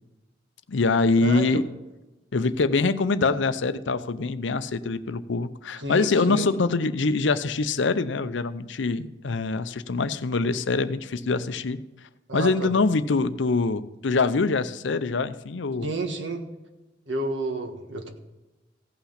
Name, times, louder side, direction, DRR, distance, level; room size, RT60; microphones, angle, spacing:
voice 1, 0.7-1.6 2.3-11.8 12.3-15.9, left 3 dB, 70° left, 13 dB, 0.6 m, -24 dB
voice 2, 1.2-1.6 5.8-6.5 12.3-12.7 15.8-16.4 17.1-18.1, right 2 dB, 75° right, 4 dB, 1.6 m, -30 dB
16.0 x 5.8 x 5.7 m, 1.1 s
head